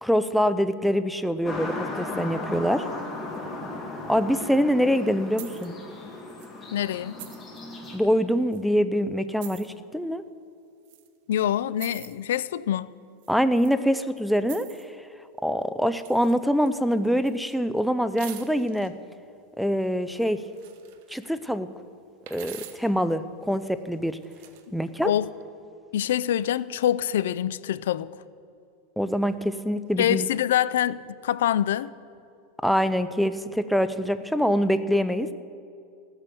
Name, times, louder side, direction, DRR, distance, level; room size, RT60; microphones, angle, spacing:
voice 1, 0.0-2.9 4.1-5.8 7.9-10.2 13.3-14.7 15.4-18.9 19.6-20.4 21.1-21.7 22.3-24.2 24.7-25.1 29.0-30.3 32.6-35.3, equal, ahead, 0.4 m, -24 dB
sound 1, 1.5-8.0, left 2 dB, 20° left, 2.0 m, -36 dB
sound 2, 5.4-5.7 6.3-6.5 7.2-7.6 8.5-8.6 9.4-9.7 10.9-11.1 11.8-12.2 13.2-13.8 14.4-14.9 16.0-16.4 16.6-17.6 18.2-18.9 20.2-21.3 22.3-22.9 24.1-24.7, right 12 dB, 60° right, 1.1 m, -45 dB
voice 2, 6.7-7.2 11.3-12.9 25.0-25.3 25.9-28.1 30.0-31.9, left 11 dB, 85° left, 0.4 m, -25 dB
15.0 x 8.9 x 6.8 m
supercardioid pair, 150°, 0 cm